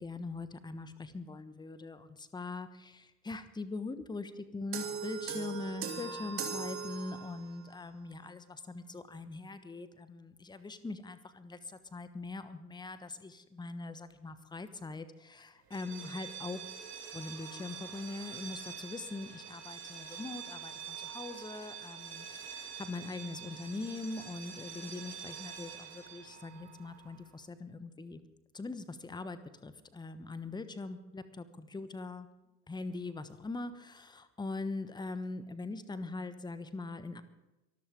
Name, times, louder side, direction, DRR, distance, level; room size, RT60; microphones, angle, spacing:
voice 1, 0.0-16.7 17.1-28.2 28.5-32.3 32.7-37.2, left 3 dB, 10° left, 12 dB, 1.2 m, -42 dB
sound 1, 4.7-7.6, right 6 dB, 30° right, 2.6 m, -39 dB
sound 2, 15.6-27.3, right 7 dB, 75° right, 2.7 m, -46 dB
24.5 x 13.0 x 3.7 m, 1.0 s
figure-of-eight pair, 75°, 47 cm